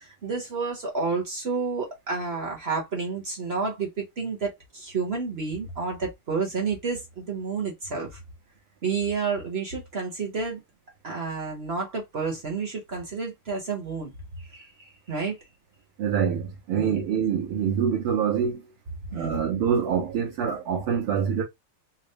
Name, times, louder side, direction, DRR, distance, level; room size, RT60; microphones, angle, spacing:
voice 1, 0.2-8.1 8.8-10.6 11.0-14.1 14.5-14.6 15.1-15.3 16.7-17.0 19.1-19.4, right 4 dB, 40° right, 0.9 m, -30 dB
voice 2, 16.0-18.6 19.1-21.4, right 7 dB, 90° right, 2.1 m, -25 dB
4.7 x 2.0 x 3.3 m
omnidirectional pair, 2.4 m